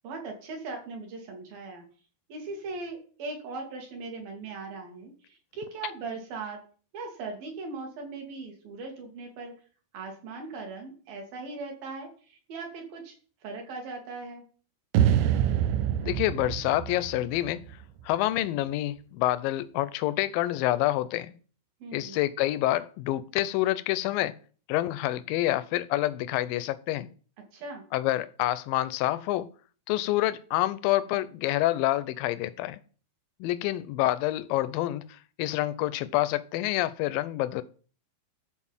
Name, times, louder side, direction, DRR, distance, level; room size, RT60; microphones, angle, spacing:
voice 1, 0.0-1.8 2.3-6.6 6.9-9.5 9.9-13.2 13.4-14.4 21.8-22.2 27.5-27.8, right 3 dB, 65° right, 4.0 m, -39 dB
sound 1, 14.9-18.1, right 10 dB, 80° right, 2.7 m, -26 dB
voice 2, 16.0-17.6 18.1-21.3 21.9-24.4 24.7-27.1 27.9-29.5 29.9-32.8 33.4-35.1 35.4-37.6, left 15 dB, 80° left, 2.1 m, -27 dB
13.0 x 4.8 x 7.3 m
omnidirectional pair, 4.6 m